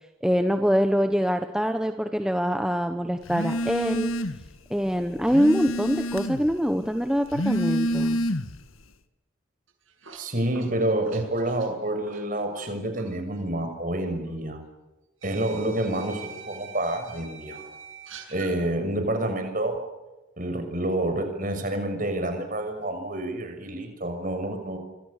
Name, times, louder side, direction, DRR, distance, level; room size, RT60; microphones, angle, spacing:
voice 1, 0.2-4.1 4.7-8.2, equal, 5° right, 6 dB, 1.1 m, -24 dB
Telephone, 3.3-4.5 4.9-6.5 7.2-8.7, equal, 90° left, 1.7 m, -28 dB
sound 1, 9.7-12.7 13.0-13.2 14.3-14.4 15.2-18.5, right 6 dB, 80° right, 7.0 m, -45 dB
voice 2, 10.2-14.6 15.2-17.6 18.3-19.8 20.4-24.8, right 1 dB, 40° right, 6 dB, 6.3 m, -28 dB
27.0 x 26.0 x 6.7 m, 1.0 s
head